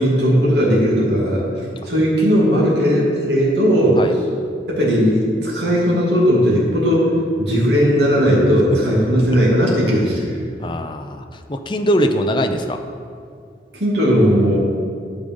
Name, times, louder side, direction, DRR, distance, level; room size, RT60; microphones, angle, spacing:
voice 1, 0.0-1.4 1.8-4.0 4.7-7.1 7.4-10.2 13.7-14.6, equal, 75° right, -4 dB, 2.5 m, -16 dB
voice 2, 10.6-12.8, equal, 25° left, 6 dB, 0.5 m, -21 dB
12.0 x 5.2 x 5.4 m, 2.2 s
head